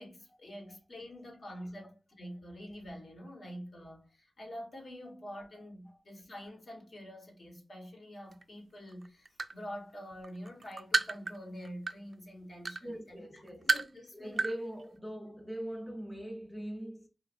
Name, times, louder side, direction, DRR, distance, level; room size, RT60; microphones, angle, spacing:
voice 1, 0.0-14.5, equal, 60° left, 1.4 m, -46 dB
sound 1, 8.3-8.4 8.9-9.6 10.1-12.1 12.6-12.8 13.4-14.0 14.3-14.5 14.8-14.9, right 3 dB, 50° right, 0.3 m, -31 dB
voice 2, 12.8-13.7 14.1-17.1, equal, 5° left, 1.0 m, -41 dB
3.2 x 2.4 x 2.5 m
cardioid pair, 55°, 0 cm